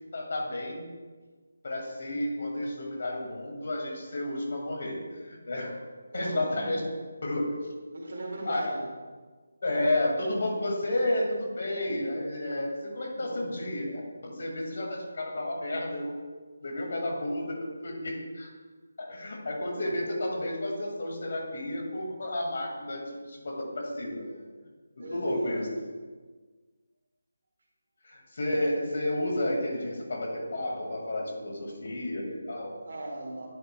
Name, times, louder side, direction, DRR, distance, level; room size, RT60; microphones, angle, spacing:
voice 1, 0.1-0.9 1.6-5.8 6.1-6.8 7.2-7.4 8.5-8.6 9.6-16.2 16.6-18.5 19.0-24.3 25.1-25.7 28.0-32.8, left 1 dB, 55° left, 0 dB, 2.0 m, -31 dB
voice 2, 6.1-6.7 7.3-7.5 7.9-8.9 13.2-13.7 24.3-24.4 25.0-25.7 32.8-33.5, right 1 dB, 60° right, -1 dB, 2.0 m, -38 dB
10.0 x 6.9 x 2.3 m, 1.4 s
figure-of-eight pair, 160°, 0 cm